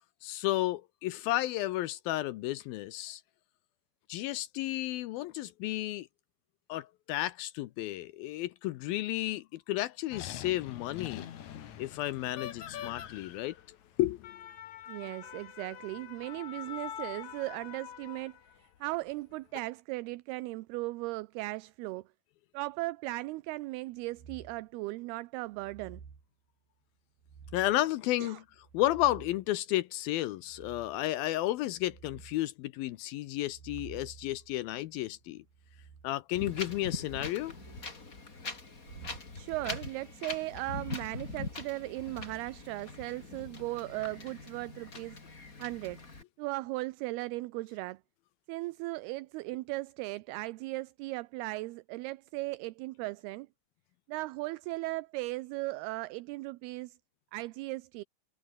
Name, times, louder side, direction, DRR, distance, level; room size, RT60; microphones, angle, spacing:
voice 1, 0.2-3.2 4.1-6.1 6.7-11.3 11.8-14.4 27.5-28.4 28.7-35.4 36.0-37.5, left 15 dB, 75° left, 2.3 m, -32 dB
sound 1, 10.1-18.6 19.3-19.6, left 10 dB, 55° left, 2.6 m, -45 dB
voice 2, 14.9-22.0 22.5-26.0 28.2-28.4 39.3-45.2 45.6-46.0 46.4-48.0 48.5-53.5 54.1-57.0 57.3-58.0, right 20 dB, 80° right, 2.5 m, -37 dB
sound 2, 24.1-24.7 25.5-26.3 27.2-27.9 28.5-29.5 30.5-31.1 31.5-32.4 33.4-36.1 37.4-38.0 38.8-39.3 40.5-41.7 42.2-42.4, right 6 dB, 60° right, 5.9 m, -52 dB
Wind, 36.3-46.2, left 3 dB, 20° left, 3.3 m, -42 dB
omnidirectional pair, 4.8 m